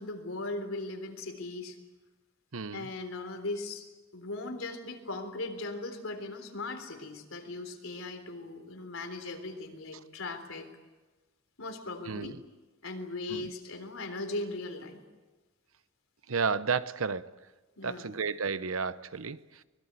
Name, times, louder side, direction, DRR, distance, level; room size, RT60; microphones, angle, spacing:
voice 1, 0.0-1.8 2.7-10.7 11.6-12.3 12.8-15.0 17.8-18.1, left 2 dB, 85° left, 6 dB, 3.7 m, -38 dB
voice 2, 2.5-2.9 12.1-12.4 13.3-13.5 16.3-17.3 17.8-19.4, right 5 dB, 85° right, 15 dB, 0.9 m, -32 dB
24.0 x 21.5 x 8.3 m, 1.2 s
head